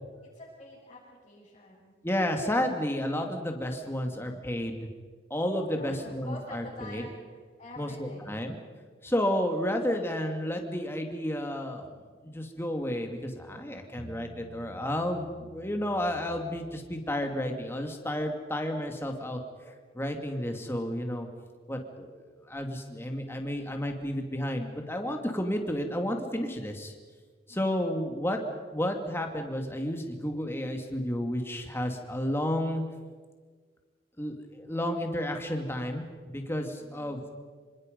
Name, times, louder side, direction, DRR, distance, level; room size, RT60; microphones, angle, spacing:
voice 1, 0.3-1.9 4.0-4.4 5.7-8.4 27.5-27.8 36.8-37.3, left 1 dB, 30° left, -5 dB, 5.4 m, -47 dB
voice 2, 2.0-4.9 5.3-7.0 7.8-8.6 9.0-11.9 12.2-21.3 21.7-26.9 27.5-28.4 28.7-32.8 34.2-37.3, left 1 dB, 15° left, 4 dB, 2.4 m, -31 dB
Bass guitar, 14.0-17.4, right 1 dB, 35° right, 1.3 m, -50 dB
26.5 x 25.5 x 5.3 m, 1.6 s
head